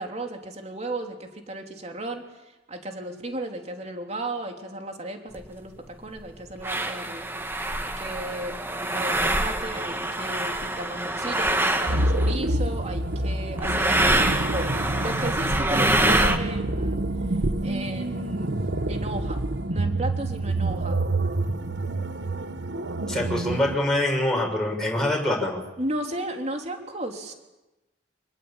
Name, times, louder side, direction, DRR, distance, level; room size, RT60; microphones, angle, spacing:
voice 1, 0.0-2.2 2.7-7.3 8.0-14.0 14.5-17.0 17.6-18.6 18.9-19.4 19.7-21.0 25.8-27.3, right 1 dB, 35° right, 3 dB, 3.2 m, -34 dB
sound 1, 5.3-5.4 6.2-6.3 6.6-12.4 13.6-16.4, right 1 dB, 15° right, 1.8 m, -25 dB
sound 2, 11.9-23.8, right 2 dB, 75° right, 1.3 m, -27 dB
voice 2, 23.1-25.6, left 1 dB, 5° left, -1 dB, 6.6 m, -24 dB
27.5 x 20.0 x 8.9 m, 1.0 s
head